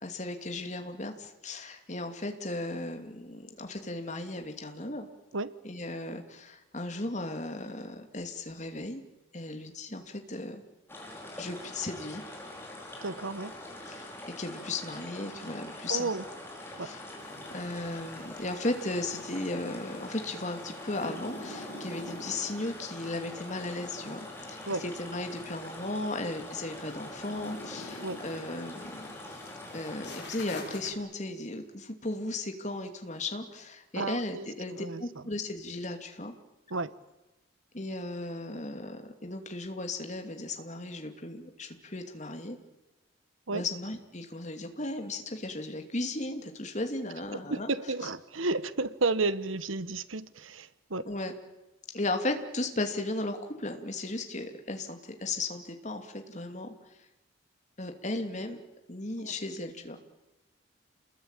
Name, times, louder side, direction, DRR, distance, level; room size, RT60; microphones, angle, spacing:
voice 1, 0.0-5.1 5.6-9.0 9.3-10.6 11.4-12.2 13.9-14.1 14.4-16.1 16.8-17.0 17.5-29.4 29.7-36.3 37.7-42.6 43.5-47.7 51.1-51.3 51.9-56.7 57.8-58.6 58.9-60.0, left 2 dB, 35° left, 5 dB, 2.7 m, -36 dB
sound 1, 10.9-30.3, left 1 dB, 10° left, 5.2 m, -44 dB
voice 2, 13.0-13.5 15.9-16.2 16.8-16.9 24.7-24.8 28.0-28.2 33.9-35.0 36.7-36.9 43.5-43.6 47.3-51.0 59.2-59.3, right 3 dB, 85° right, 15 dB, 1.2 m, -32 dB
sound 2, 17.2-30.9, left 1 dB, 55° left, 7.0 m, -47 dB
28.5 x 21.0 x 9.1 m, 1.0 s
head